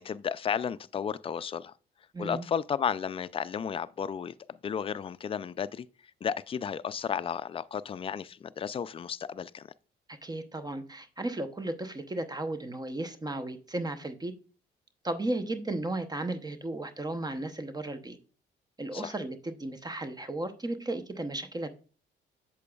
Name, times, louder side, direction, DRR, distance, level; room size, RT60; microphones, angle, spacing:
voice 1, 0.0-1.7 2.2-5.9 6.2-9.7 18.9-19.1, left 7 dB, 30° left, 0.3 m, -33 dB
voice 2, 2.1-2.5 10.1-14.3 15.0-18.2 18.8-21.7, right 2 dB, 20° right, 0.7 m, -35 dB
8.2 x 7.0 x 2.3 m
cardioid pair, 90°, 20 cm